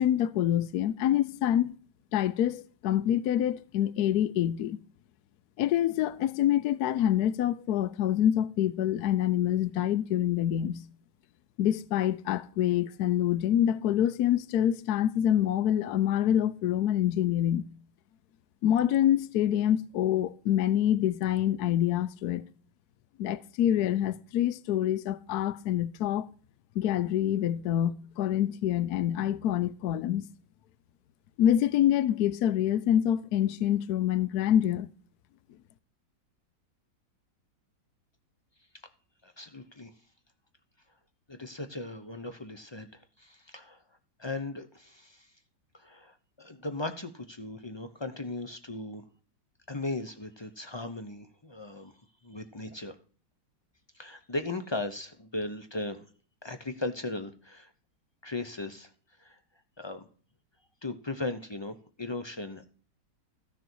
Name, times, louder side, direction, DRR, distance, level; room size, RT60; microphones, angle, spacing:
voice 1, 0.0-1.7 2.1-4.8 5.6-10.8 11.6-17.6 18.6-22.5 23.2-26.3 26.8-30.3 31.4-34.9, left 11 dB, 70° left, 1.0 m, -26 dB
voice 2, 39.2-39.9 41.3-43.8 44.2-45.3 45.7-49.0 49.7-51.9 52.2-53.0 53.9-56.0 56.4-57.7 58.2-58.9 59.2-59.4 59.8-60.1 60.8-62.7, left 2 dB, 40° left, 0.3 m, -37 dB
14.5 x 6.6 x 4.5 m
omnidirectional pair, 2.0 m